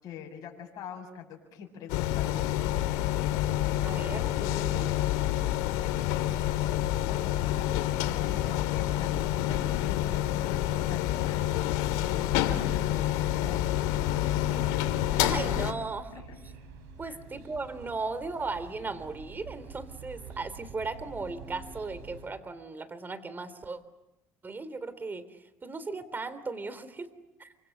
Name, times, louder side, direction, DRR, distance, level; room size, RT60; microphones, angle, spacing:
voice 1, 0.0-2.9 5.8-6.5 7.1-10.1 10.7-13.8 16.1-16.4 17.0-17.2, left 7 dB, 60° left, 0 dB, 6.9 m, -45 dB
sound 1, 1.9-15.7, left 13 dB, 85° left, 2.4 m, -28 dB
voice 2, 3.8-4.9 15.1-16.2 17.0-23.8 24.4-27.1 27.4-27.5, right 3 dB, 25° right, 14 dB, 3.5 m, -37 dB
sound 2, 12.9-22.3, right 4 dB, 85° right, 6.9 m, -48 dB
28.5 x 25.5 x 8.0 m, 0.91 s
supercardioid pair, 80°, 7 cm